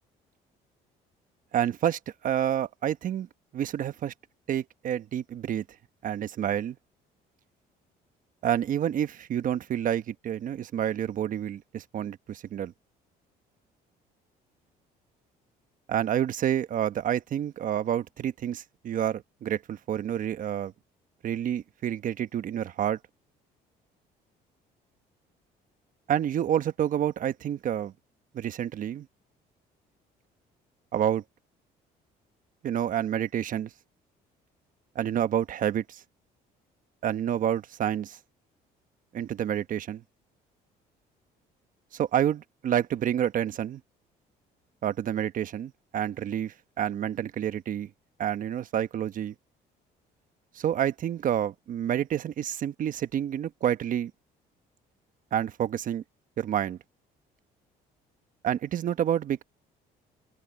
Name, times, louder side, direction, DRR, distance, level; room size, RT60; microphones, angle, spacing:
voice 1, 1.5-3.3 3.5-4.1 4.5-5.6 6.0-6.8 8.4-12.7 15.9-20.7 21.2-23.0 26.1-27.9 28.3-29.1 30.9-31.2 32.6-33.7 34.9-36.0 37.0-38.2 39.1-40.0 41.9-43.8 44.8-47.9 48.2-49.3 50.5-54.1 55.3-56.0 56.4-56.8 58.4-59.4, right 10 dB, 55° right, 1.1 m, -28 dB
cardioid pair, 110°, 17 cm